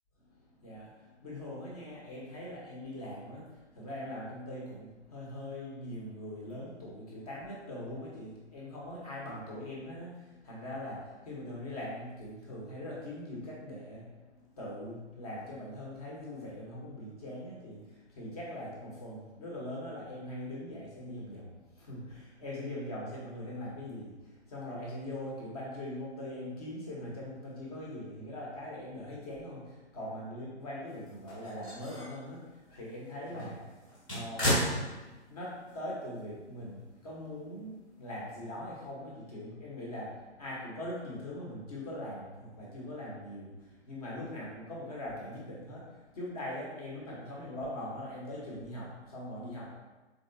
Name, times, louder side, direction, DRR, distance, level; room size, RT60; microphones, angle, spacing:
voice 1, 0.6-34.7 35.0-49.8, left 1 dB, 30° left, -5 dB, 1.1 m, -42 dB
sound 1, 31.1-32.2 32.7-32.8 33.3-35.4 35.7-35.8 37.0-37.1, equal, 10° left, 1.1 m, -34 dB
3.9 x 3.4 x 2.7 m, 1.1 s
figure-of-eight pair, 135°, 36 cm